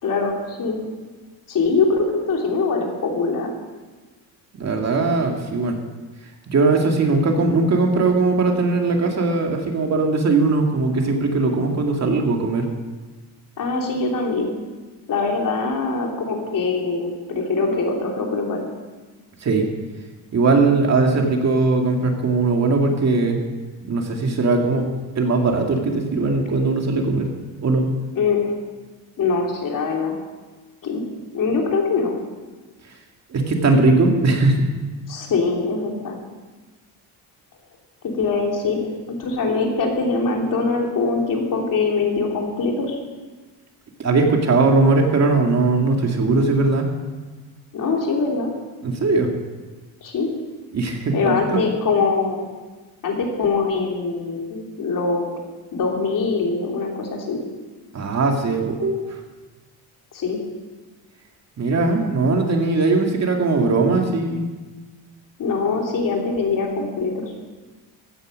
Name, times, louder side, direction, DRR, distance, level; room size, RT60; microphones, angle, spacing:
voice 1, 0.0-0.8 1.5-3.5 13.6-14.5 15.1-18.6 28.2-28.5 29.2-30.1 30.8-31.0 31.3-32.1 35.1-36.2 38.0-38.8 39.2-43.0 47.7-48.5 50.0-50.3 51.1-52.5 53.0-55.4 55.7-57.4 60.1-60.4 65.4-67.3, left 4 dB, 55° left, 0 dB, 3.1 m, -23 dB
voice 2, 4.6-5.8 6.5-12.7 19.4-19.7 20.3-23.4 23.9-24.9 25.2-27.3 27.6-27.9 33.3-34.6 44.0-46.9 48.8-49.3 50.7-51.6 57.9-59.2 61.6-64.5, right 3 dB, 40° right, 2 dB, 2.2 m, -19 dB
15.0 x 9.9 x 6.4 m, 1.3 s
cardioid pair, 135°, 39 cm